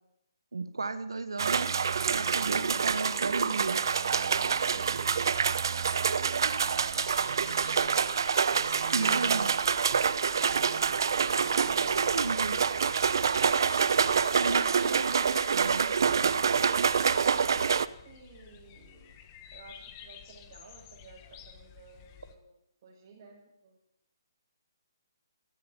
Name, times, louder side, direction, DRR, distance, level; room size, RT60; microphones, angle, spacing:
voice 1, 0.5-1.8 2.1-3.9 6.3-6.4 8.9-9.5 11.3-11.5 11.8-12.6 14.3-15.9 17.6-17.7, right 3 dB, 85° right, 11 dB, 1.5 m, -34 dB
sound 1, 1.4-17.9, right 6 dB, 65° right, 0.8 m, -27 dB
sound 2, 4.5-22.3, left 9 dB, 30° left, 1.8 m, -52 dB
voice 2, 16.9-19.2 19.5-22.4 22.8-23.8, right 4 dB, 45° right, -5 dB, 6.7 m, -52 dB
17.0 x 14.0 x 5.5 m, 0.80 s
hypercardioid pair, 145°, 2 cm